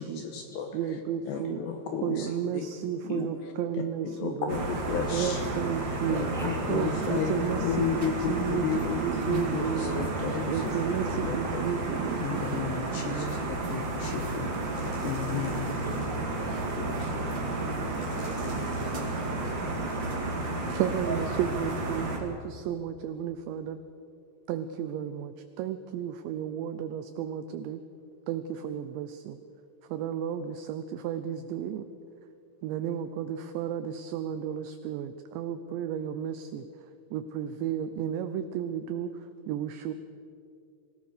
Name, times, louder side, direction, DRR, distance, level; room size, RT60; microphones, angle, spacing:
voice 1, 0.0-0.7 1.3-2.3 2.5-2.7 3.0-3.3 4.2-5.4 6.1-10.5 11.2-11.6 12.2-14.5 15.0-15.7 16.8-17.2, left 8 dB, 75° left, 5 dB, 2.8 m, -33 dB
voice 2, 0.7-1.6 2.0-4.6 5.1-6.3 6.7-10.1 10.5-13.4 16.0-16.3 20.7-23.8 24.5-27.8 28.3-29.4 29.9-31.9 32.6-39.9, right 9 dB, 80° right, 10 dB, 2.6 m, -33 dB
voice 3, 1.3-2.0 2.3-2.5 3.2-3.3 6.3-6.6 6.9-7.3 15.1-18.9 19.8-20.2, equal, ahead, -5 dB, 3.9 m, -44 dB
sound 1, 4.5-22.2, right 2 dB, 50° right, 1.4 m, -32 dB
sound 2, 14.6-16.2 17.9-19.2, left 1 dB, 40° left, 5.8 m, -51 dB
24.5 x 16.0 x 6.6 m, 2.6 s
omnidirectional pair, 5.8 m